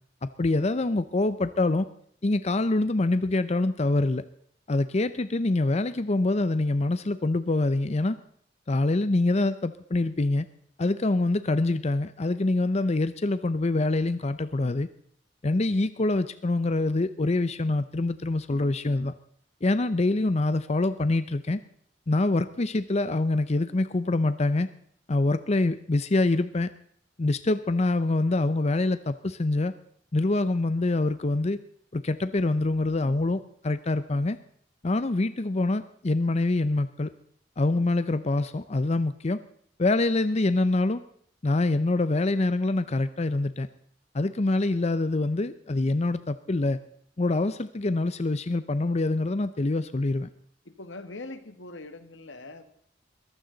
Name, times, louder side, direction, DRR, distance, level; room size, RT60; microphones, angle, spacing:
voice 1, 0.2-1.9 2.2-4.2 4.7-8.2 8.7-10.4 10.8-14.9 15.4-19.1 19.6-21.6 22.1-24.7 25.1-26.7 27.2-29.7 30.1-31.6 31.9-34.4 34.8-37.1 37.6-39.4 39.8-41.0 41.4-43.7 44.1-46.8 47.2-50.3, left 2 dB, 35° left, 13 dB, 0.6 m, -25 dB
voice 2, 50.7-52.6, left 2 dB, 90° left, 9 dB, 1.8 m, -42 dB
22.5 x 15.5 x 4.0 m, 0.64 s
head